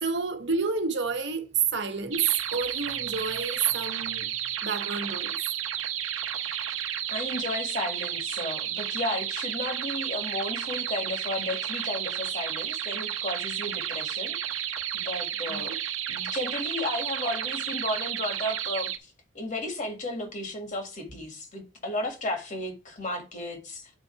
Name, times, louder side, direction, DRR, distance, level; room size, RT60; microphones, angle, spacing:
voice 1, 0.0-4.3 4.6-5.4 15.5-15.6, right 5 dB, 60° right, 1.2 m, -29 dB
sound 1, 2.1-19.0, right 10 dB, 85° right, 0.9 m, -32 dB
voice 2, 7.1-14.3 14.9-15.8 16.1-23.9, left 1 dB, 40° left, 1.9 m, -34 dB
9.1 x 4.3 x 4.5 m
head